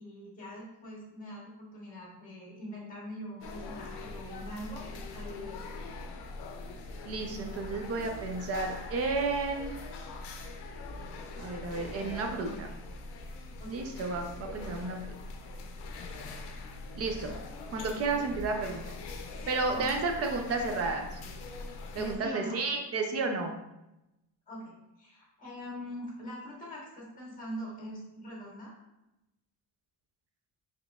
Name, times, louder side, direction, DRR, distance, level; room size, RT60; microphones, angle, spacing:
voice 1, 0.0-5.7 13.6-13.9 19.7-19.9 21.9-22.6 24.5-28.7, equal, 20° left, -4 dB, 1.2 m, -43 dB
sound 1, 3.4-22.2, left 3 dB, 75° left, 0.6 m, -42 dB
voice 2, 7.0-9.8 11.4-12.8 13.7-15.1 17.0-17.4 17.7-18.9 19.5-21.1 22.0-23.5, right 3 dB, 40° right, 3 dB, 0.4 m, -32 dB
3.9 x 3.1 x 2.3 m, 0.92 s
cardioid pair, 175°, 40 cm